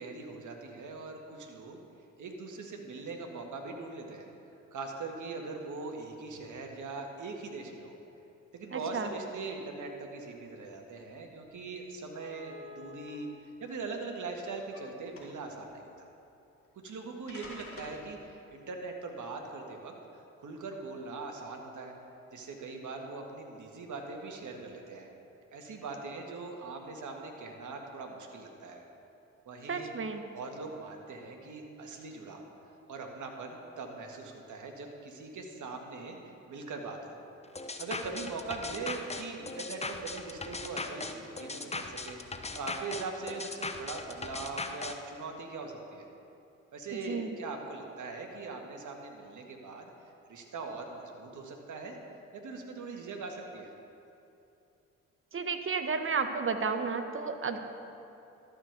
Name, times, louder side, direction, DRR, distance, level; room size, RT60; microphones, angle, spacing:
voice 1, 0.0-1.8 2.2-4.3 4.7-8.0 8.5-16.1 16.8-21.9 22.3-25.1 25.5-28.8 29.5-29.9 30.3-32.4 32.9-37.2 37.8-42.2 42.5-46.1 46.7-49.9 50.3-52.0 52.3-53.7, right 3 dB, 55° right, 2 dB, 1.8 m, -41 dB
voice 2, 8.7-9.1 29.7-30.2 47.1-47.3 55.3-57.6, right 5 dB, 35° right, 7 dB, 1.2 m, -32 dB
sound 1, 11.0-11.1 11.5-11.6 12.1-13.1 14.0-14.8 15.1-15.5 16.6-16.7 17.3-18.0, left 2 dB, 35° left, 2.9 m, -48 dB
sound 2, 37.6-45.0, left 3 dB, 15° left, 0.8 m, -38 dB
12.5 x 6.6 x 6.7 m, 2.8 s
hypercardioid pair, 40°, 37 cm